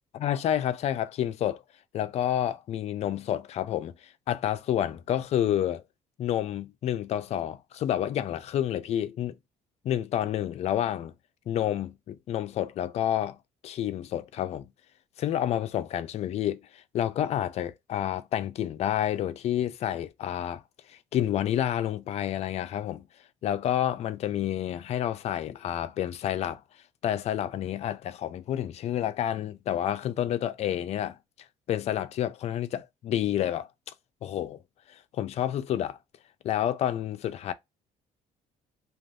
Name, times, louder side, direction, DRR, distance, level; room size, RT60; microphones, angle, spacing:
voice 1, 0.1-1.6 1.9-5.8 6.2-9.4 9.8-11.1 11.5-13.4 13.6-14.7 15.2-20.6 20.9-23.1 23.4-26.6 27.0-31.2 31.7-33.7 34.2-34.6 34.9-36.0 36.4-37.5, left 11 dB, 50° left, 0.4 m, -29 dB
2.6 x 2.3 x 3.2 m
cardioid pair, 140°, 14 cm